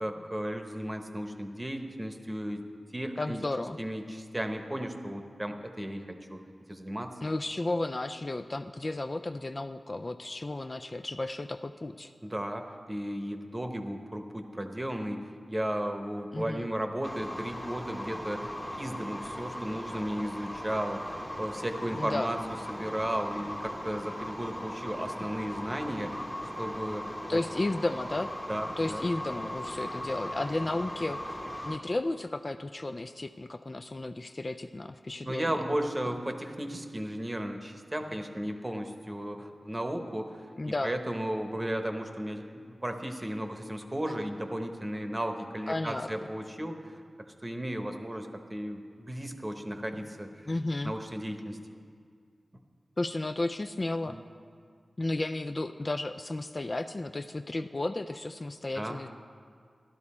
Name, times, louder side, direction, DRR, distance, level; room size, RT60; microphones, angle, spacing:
voice 1, 0.0-2.7 2.9-3.4 3.8-6.4 6.7-7.1 12.2-22.4 22.7-26.2 26.6-27.0 27.3-27.4 28.5-29.0 35.2-40.5 40.8-50.5 50.8-51.6 54.0-54.2 58.7-59.1, right 1 dB, 20° right, 5 dB, 0.9 m, -35 dB
voice 2, 3.2-3.8 7.2-12.1 16.3-16.7 22.0-22.4 27.3-28.3 28.8-35.7 40.6-40.9 45.7-46.1 50.5-50.9 53.0-54.2 55.0-59.1, left 2 dB, 35° left, 7 dB, 0.3 m, -33 dB
sound 1, 17.0-31.8, equal, 5° left, 0.9 m, -39 dB
12.5 x 12.0 x 4.3 m, 2.2 s
wide cardioid pair, 80°, 0 cm